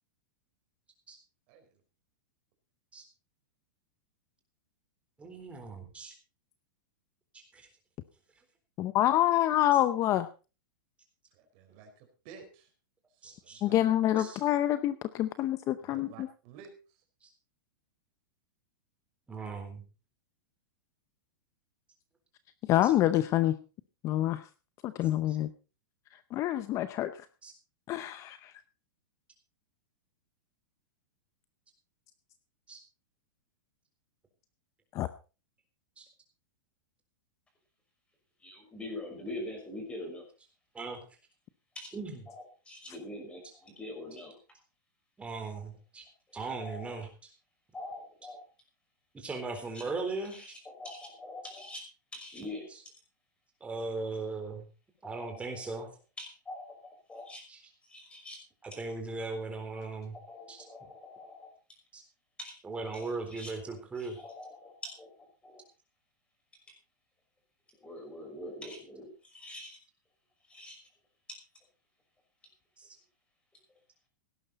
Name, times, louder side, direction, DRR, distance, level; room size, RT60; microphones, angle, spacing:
voice 1, 1.5-1.8 11.3-12.7 13.1-14.2 15.8-17.0, right 6 dB, 45° right, 5 dB, 4.7 m, -52 dB
voice 2, 5.2-6.1 7.3-7.7 13.2-13.6 14.2-14.3 19.3-19.8 22.8-22.9 27.4-27.5 32.7-32.8 36.0-36.1 40.7-41.0 41.9-42.2 45.2-46.1 46.3-47.1 49.1-50.5 53.6-54.7 55.0-55.9 58.8-60.2 60.5-60.6 61.9-62.0 62.6-64.2 72.8-72.9, right 3 dB, 10° right, 4 dB, 3.9 m, -38 dB
voice 3, 8.8-10.3 13.6-16.3 22.7-23.6 24.0-24.4 24.8-25.5 26.3-27.3 27.9-28.5 34.9-35.1, left 13 dB, 30° left, 13 dB, 0.7 m, -27 dB
voice 4, 38.4-40.3 41.7-41.9 42.3-44.4 46.6-47.0 47.7-48.4 49.7-49.8 50.2-51.9 52.1-52.7 55.0-55.8 56.2-57.4 57.8-58.4 58.7-58.8 60.1-61.5 62.4-62.5 62.9-63.5 64.0-65.6 67.8-69.8 70.5-70.8 71.3-71.4, left 1 dB, 10° left, 3 dB, 5.7 m, -44 dB
17.0 x 11.0 x 4.1 m, 0.33 s
supercardioid pair, 150°, 11 cm